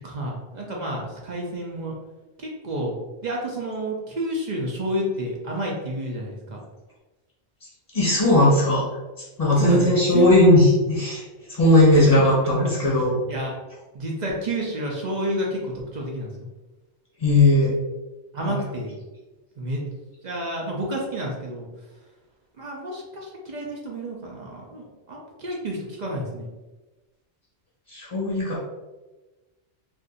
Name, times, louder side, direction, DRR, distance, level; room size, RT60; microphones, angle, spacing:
voice 1, 0.0-1.9 2.4-2.9 3.2-6.6 9.5-10.3 11.9-12.1 12.4-12.5 12.8-13.0 13.3-13.5 13.9-16.3 18.3-18.9 19.6-19.8 20.2-21.7 22.6-26.5, right 1 dB, 50° right, -2 dB, 0.6 m, -30 dB
voice 2, 7.9-8.8 9.4-11.2 11.5-13.2 17.2-17.7 18.4-18.6 27.9-28.6, left 1 dB, 30° left, -7 dB, 1.1 m, -17 dB
2.5 x 2.5 x 3.8 m, 1.2 s
omnidirectional pair, 1.2 m